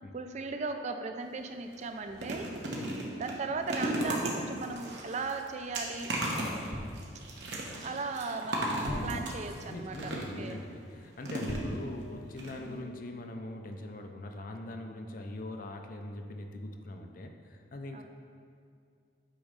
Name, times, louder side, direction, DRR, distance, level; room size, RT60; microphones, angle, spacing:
voice 1, 0.1-2.5 3.1-6.1 7.8-10.6 12.6-13.1 17.9-18.0, right 3 dB, 40° right, 6 dB, 0.4 m, -37 dB
sound 1, 1.2-1.4 1.7-10.5 11.2-12.0 12.4-12.5 12.8-12.9, right 1 dB, 70° right, 1.0 m, -36 dB
voice 2, 2.7-3.0 6.3-6.7 8.8-9.3 9.6-18.0, left 1 dB, 50° left, 4 dB, 0.5 m, -42 dB
sound 2, 6.7-7.5 8.8-9.8 11.5-12.6 12.8-13.1, equal, 15° left, 0.7 m, -41 dB
8.5 x 3.1 x 5.0 m, 2.3 s
head